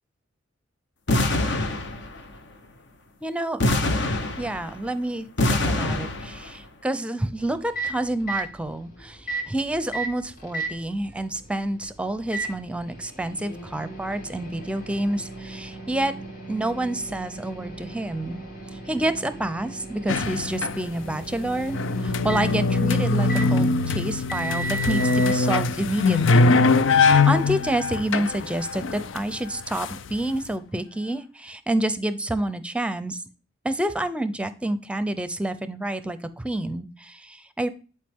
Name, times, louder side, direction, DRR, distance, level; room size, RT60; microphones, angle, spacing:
sound 1, 1.1-2.3 3.6-4.9 5.4-6.5, left 1 dB, 65° left, 1.1 m, -24 dB
voice 1, 3.2-3.6 4.4-16.1 16.5-18.4 18.7-26.6 26.9-33.2 33.6-37.7, right 1 dB, 5° right, 12 dB, 0.6 m, -28 dB
Microwave oven, 7.3-25.4, right 3 dB, 50° left, 2.3 m, -36 dB
sound 2, 20.1-21.1 21.5-30.4, left 3 dB, 90° left, 0.5 m, -22 dB
10.5 x 4.7 x 3.6 m, 0.36 s
head